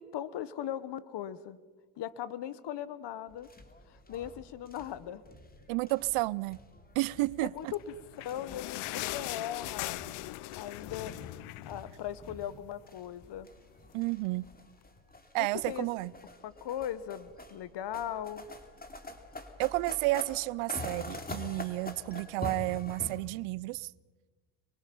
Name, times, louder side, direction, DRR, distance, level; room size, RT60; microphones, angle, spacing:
voice 1, 0.0-1.6 2.0-3.5 3.9-5.2 7.4-7.9 8.2-10.1 10.6-11.1 11.6-13.5 15.4-15.9 16.4-18.5, left 10 dB, 55° left, 1.3 m, -39 dB
sound 1, 3.3-23.2, left 2 dB, 20° left, 2.8 m, -46 dB
voice 2, 5.7-6.6 6.9-7.7 13.9-14.4 15.3-16.1 19.6-23.9, right 21 dB, 80° right, 0.7 m, -31 dB
sound 2, 7.7-12.5 12.9-13.0 13.2-13.4 14.1-14.2, left 18 dB, 75° left, 0.8 m, -40 dB
25.0 x 22.5 x 5.5 m
supercardioid pair, 85°, 49 cm